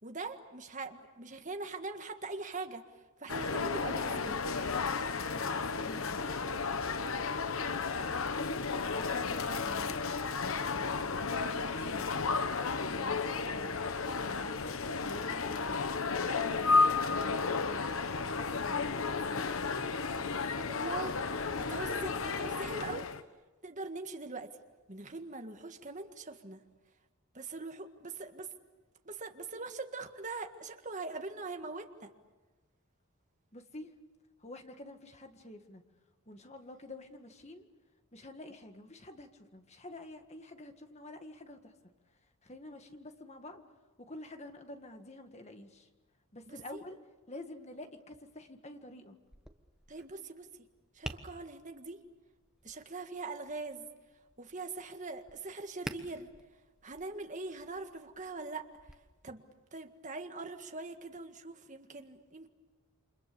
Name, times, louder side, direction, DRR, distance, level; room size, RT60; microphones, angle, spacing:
voice 1, 0.0-2.8 3.2-4.4 20.7-23.1 23.6-24.5 24.9-26.6 27.3-28.5 29.1-32.1 46.5-46.8 49.9-50.5 50.9-52.0 52.6-53.9 54.4-56.3 56.8-58.7 59.2-59.4 59.7-62.5, right 3 dB, 35° right, 5 dB, 1.8 m, -42 dB
sound 1, 3.3-23.2, left 4 dB, 70° left, 1.1 m, -33 dB
voice 2, 5.3-6.7 8.7-10.1 10.4-12.1 12.5-13.8 14.2-15.9 16.2-17.8 18.3-19.6 33.5-33.9 34.4-35.8 36.3-37.7 38.1-41.9 42.4-43.6 44.0-45.9 46.3-49.2, left 1 dB, 30° left, 6 dB, 1.8 m, -49 dB
sound 2, 8.3-12.4, left 1 dB, 55° left, 5.1 m, -59 dB
Tap, 49.2-58.9, equal, 5° right, 1.2 m, -50 dB
29.0 x 26.5 x 7.0 m, 1.2 s
head